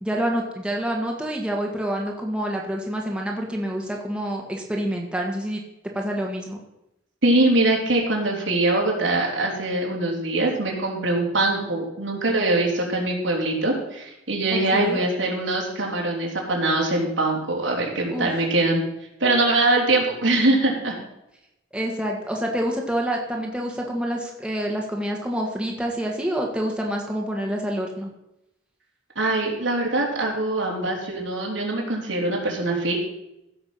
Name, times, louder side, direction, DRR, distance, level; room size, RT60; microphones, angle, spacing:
voice 1, 0.0-5.6 5.9-6.6 14.5-15.0 18.1-18.3 21.7-28.1, equal, 5° right, -1 dB, 1.7 m, -27 dB
voice 2, 7.2-18.8 19.2-21.0 29.2-32.9, right 2 dB, 85° right, -2 dB, 3.6 m, -23 dB
15.5 x 7.0 x 5.7 m, 0.88 s
head